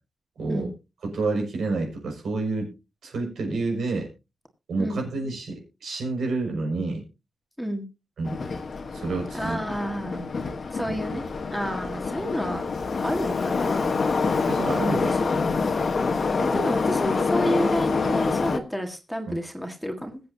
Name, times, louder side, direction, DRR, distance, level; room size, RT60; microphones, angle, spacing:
voice 1, 0.4-0.7 1.0-2.7 3.0-4.1 4.7-7.0 8.2-8.4 8.9-9.6 10.9-11.0 14.5-15.1 19.3-19.4, right 3 dB, 85° right, 1 dB, 5.9 m, -28 dB
Subway metro underground, 8.3-18.6, left 4 dB, 50° left, 1.3 m, -26 dB
voice 2, 9.3-10.3 10.7-11.2 11.5-12.7 13.0-14.0 14.7-15.4 16.4-20.2, equal, ahead, 4 dB, 1.7 m, -30 dB
21.5 x 8.0 x 2.8 m, 0.27 s
wide cardioid pair, 145°, 0 cm